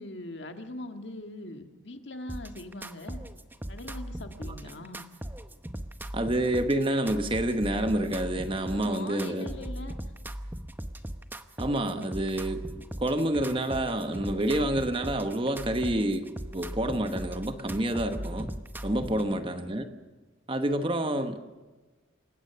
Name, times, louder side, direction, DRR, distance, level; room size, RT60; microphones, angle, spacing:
voice 1, 0.0-3.2 3.7-5.1 8.7-10.1 12.0-12.1, left 2 dB, 60° left, 6 dB, 1.8 m, -42 dB
sound 1, 2.3-19.3, right 1 dB, 10° right, 0.8 m, -39 dB
voice 2, 6.1-9.5 11.6-12.6 13.0-18.5 18.8-19.9 20.5-21.4, right 1 dB, 25° right, 8 dB, 1.2 m, -28 dB
28.0 x 16.5 x 6.9 m, 1.2 s
head